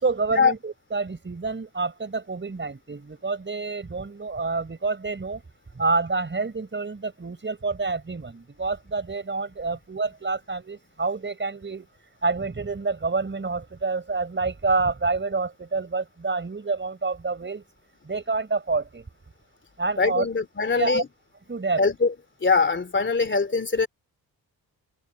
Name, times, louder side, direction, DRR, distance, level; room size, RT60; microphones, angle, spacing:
voice 1, 0.0-5.4 5.7-11.9 12.2-17.6 18.0-19.1 19.8-20.3 20.8-21.0 21.5-21.8, right 3 dB, 30° right, 4.9 m, -28 dB
voice 2, 20.0-21.1 21.8-22.1 22.4-23.9, left 4 dB, 30° left, 2.9 m, -22 dB
cardioid pair, 85°, 39 cm